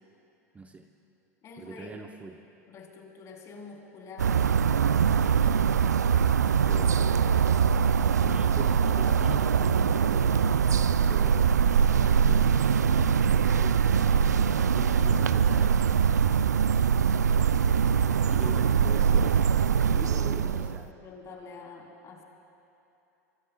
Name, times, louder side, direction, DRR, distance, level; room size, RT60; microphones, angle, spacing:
voice 1, 0.5-0.9 1.6-2.4 6.6-7.2 8.2-10.7 11.0-11.7 13.1-13.8 14.4-15.9 18.2-19.5 20.1-20.9, right 4 dB, 15° right, 4 dB, 0.8 m, -43 dB
voice 2, 1.4-2.0 2.7-4.5 5.1-5.4 18.3-18.5 19.9-20.6 21.0-22.2, left 4 dB, 35° left, 1 dB, 3.4 m, -45 dB
sound 1, 4.2-20.8, right 7 dB, 90° right, 0.4 m, -23 dB
24.0 x 24.0 x 2.3 m, 3.0 s
hypercardioid pair, 95°, 9 cm